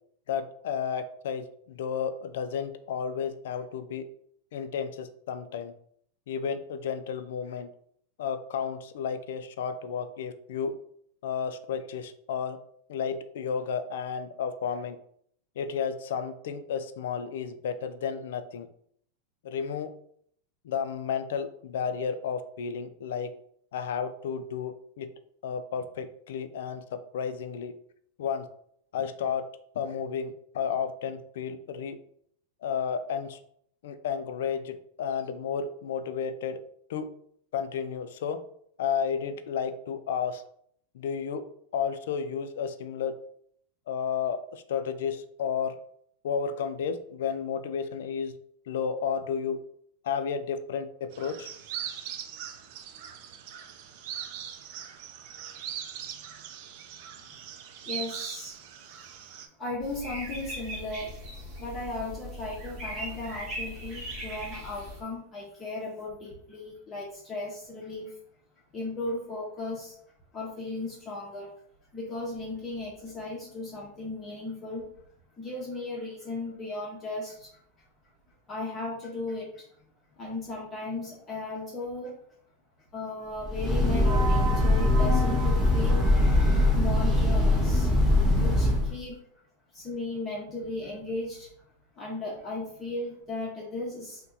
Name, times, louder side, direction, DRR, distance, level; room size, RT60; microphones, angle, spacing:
voice 1, 0.3-4.1 4.5-5.7 6.3-7.7 8.2-10.7 11.2-12.6 12.9-15.0 15.6-18.7 19.4-19.9 20.6-23.3 23.7-25.1 25.4-27.7 28.2-28.5 28.9-29.5 29.7-32.0 32.6-33.4 33.8-36.6 36.9-37.1 37.5-38.4 38.8-40.4 40.9-41.4 41.7-43.1 43.9-45.8 46.2-48.3 48.7-49.6 50.0-51.5, left 7 dB, 75° left, 10 dB, 0.3 m, -32 dB
sound 1, 51.1-59.5, right 9 dB, 55° right, 0.4 m, -40 dB
voice 2, 57.9-58.6 58.9-61.1 61.6-68.1 68.7-69.9 70.3-71.5 71.9-74.9 75.4-77.5 78.5-79.7 80.2-82.2 82.9-86.1 86.7-87.9 88.4-89.2 89.7-91.5 91.9-94.2, left 2 dB, 20° left, -4 dB, 0.7 m, -36 dB
sound 2, 59.8-65.0, equal, 35° right, 1.1 m, -39 dB
Breathing / Train, 83.4-89.0, left 1 dB, ahead, 1.1 m, -22 dB
2.8 x 2.1 x 3.7 m, 0.66 s
supercardioid pair, 140°, 0 cm